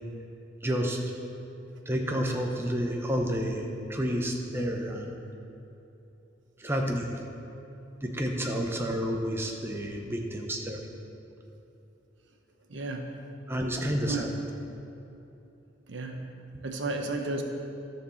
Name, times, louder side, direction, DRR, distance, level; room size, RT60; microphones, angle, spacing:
voice 1, 0.6-1.0 1.9-3.6 3.9-5.2 6.6-7.2 8.0-10.8 13.5-14.3 14.6-14.7 16.5-16.6, equal, 10° right, 1 dB, 0.7 m, -30 dB
voice 2, 12.7-13.1 14.1-14.3 15.9-16.2 16.6-17.4, right 3 dB, 70° right, 3 dB, 1.0 m, -32 dB
12.5 x 4.6 x 7.0 m, 2.9 s
head